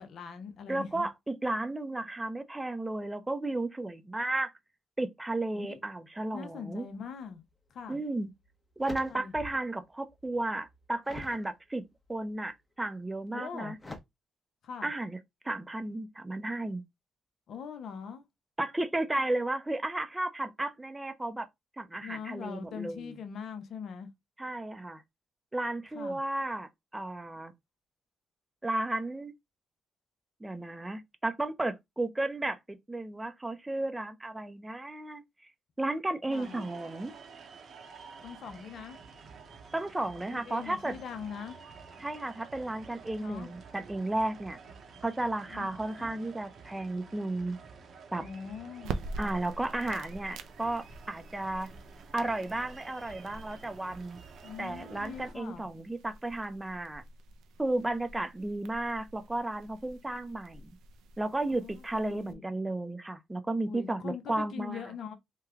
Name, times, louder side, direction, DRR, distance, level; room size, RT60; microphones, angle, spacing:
voice 1, 0.0-1.1 5.5-5.8 6.3-7.4 7.7-8.0 9.0-9.3 13.3-13.7 14.6-14.9 17.5-18.3 21.9-24.1 25.9-26.2 36.3-36.6 38.2-39.0 40.3-41.6 43.2-43.5 45.5-45.7 46.0-46.2 48.2-49.1 54.4-55.7 61.5-62.5 63.6-65.2, left 7 dB, 65° left, 0.6 m, -42 dB
voice 2, 0.7-4.5 5.0-6.9 7.9-8.3 8.8-11.8 12.1-13.8 14.8-15.2 15.4-16.8 18.6-21.5 21.8-23.2 24.4-25.0 25.5-27.5 28.6-29.3 30.4-35.2 35.8-37.1 39.7-41.0 42.0-44.6 45.0-47.6 48.1-48.2 49.2-51.7 52.1-54.2 54.6-57.0 57.6-60.8 61.2-64.8, right 2 dB, 15° right, 0.5 m, -33 dB
sound 1, 7.8-8.0 8.4-9.8 10.1-11.5 12.1-12.5 13.8-14.0, left 2 dB, 20° left, 0.8 m, -46 dB
sound 2, 36.3-55.3, right 5 dB, 55° right, 0.8 m, -51 dB
sound 3, 48.8-62.3, right 3 dB, 85° right, 0.5 m, -46 dB
3.1 x 2.2 x 3.6 m
cardioid pair, 90°, 0 cm